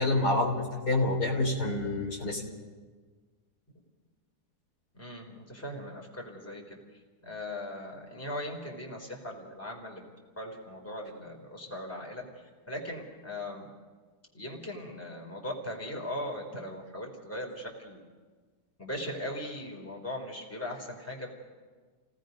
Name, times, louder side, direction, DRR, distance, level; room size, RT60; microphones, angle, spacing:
voice 1, 0.0-2.4, left 2 dB, 70° left, -1 dB, 4.1 m, -27 dB
voice 2, 4.9-10.1 10.4-13.7 14.3-18.0 18.8-21.3, left 1 dB, 10° left, 0 dB, 3.4 m, -39 dB
29.5 x 18.5 x 5.3 m, 1.4 s
omnidirectional pair, 1.8 m